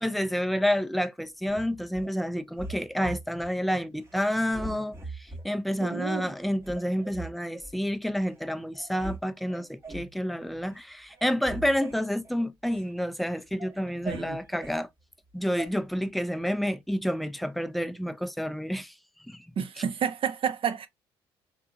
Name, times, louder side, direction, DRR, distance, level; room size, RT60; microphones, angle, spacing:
voice 1, 0.0-14.9 15.3-18.9 19.3-19.4, equal, ahead, 0.4 m, -29 dB
sound 1, 1.4-2.1 2.6-3.5 4.0-4.2 4.5-5.5 6.0-6.1 6.6-7.7 8.3-8.4 8.7-9.2 9.5-10.1 10.6-10.8 11.1-12.9 13.3-14.8 15.6-15.7, right 2 dB, 25° right, 0.8 m, -41 dB
voice 2, 5.8-6.3 14.1-14.4 19.6-20.9, right 7 dB, 50° right, 0.6 m, -30 dB
2.8 x 2.2 x 2.5 m
supercardioid pair, 60°, 12 cm